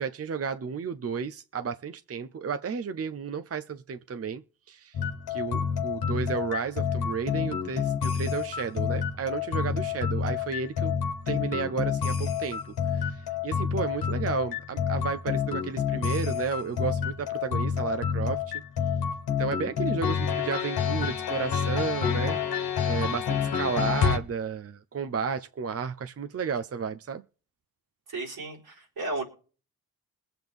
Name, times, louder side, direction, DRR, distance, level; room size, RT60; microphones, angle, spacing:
voice 1, 0.0-4.4 4.7-5.0 5.3-11.0 11.3-12.6 12.9-18.6 19.4-22.4 22.8-27.2, right 6 dB, 40° right, 0.7 m, -32 dB
sound 1, 4.9-24.2, left 7 dB, 85° left, 1.3 m, -29 dB
voice 2, 28.1-29.2, right 2 dB, 75° right, 4.1 m, -34 dB
22.0 x 7.9 x 3.5 m
supercardioid pair, 45°, 37 cm